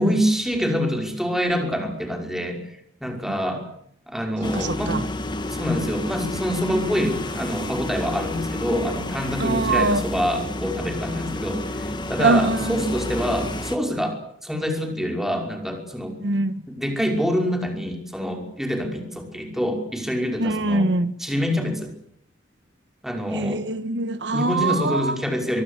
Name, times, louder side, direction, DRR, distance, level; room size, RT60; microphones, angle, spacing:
voice 1, 0.0-2.6 3.0-3.6 4.1-5.0 5.5-16.1 16.7-20.9 21.2-21.9 23.0-23.6 24.3-25.6, equal, ahead, 5.5 m, -26 dB
sound 1, 4.4-13.8, left 1 dB, 25° left, 2.2 m, -30 dB
voice 2, 4.5-5.0 9.4-10.0 12.2-12.8 16.2-16.6 20.4-21.1 23.3-25.2, right 2 dB, 85° right, 1.3 m, -23 dB
24.0 x 22.5 x 8.3 m
head